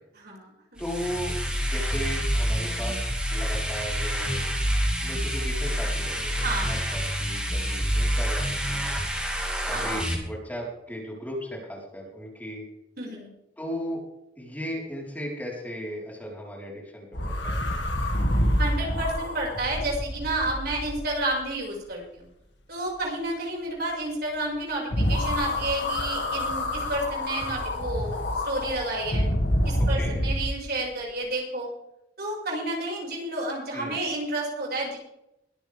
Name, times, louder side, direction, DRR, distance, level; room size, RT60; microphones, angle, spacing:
voice 1, 0.1-0.8 6.4-7.0 9.7-9.9 13.0-13.3 18.6-22.3 22.7-29.3 29.6-31.7 32.2-35.0, right 2 dB, 60° right, -2 dB, 5.8 m, -31 dB
voice 2, 0.8-3.0 3.3-4.5 5.0-8.9 9.6-12.6 13.6-14.0 14.4-17.9 29.8-30.1 33.7-34.0, equal, 10° left, -3 dB, 4.3 m, -36 dB
sound 1, 0.8-10.1, equal, 5° right, 3.4 m, -27 dB
sound 2, 17.1-21.4 24.9-30.5, left 1 dB, 75° left, 2.4 m, -27 dB
23.0 x 10.5 x 3.5 m, 0.83 s
head